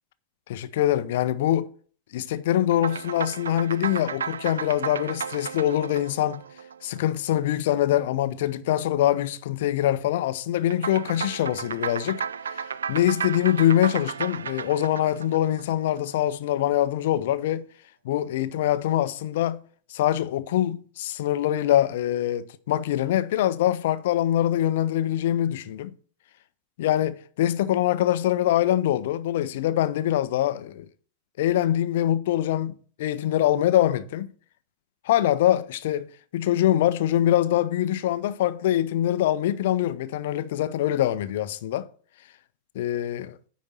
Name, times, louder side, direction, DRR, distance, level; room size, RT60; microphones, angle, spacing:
voice 1, 0.5-1.7 2.1-6.4 6.8-12.2 12.5-17.6 18.0-19.6 19.9-25.9 26.8-30.9 31.4-32.7 33.0-34.3 35.0-41.9 42.7-43.4, left 12 dB, 55° left, 0.6 m, -24 dB
sound 1, 2.7-7.4 10.7-16.1, right 7 dB, 70° right, 0.3 m, -34 dB
9.7 x 4.1 x 6.2 m
figure-of-eight pair, 90°, 0 cm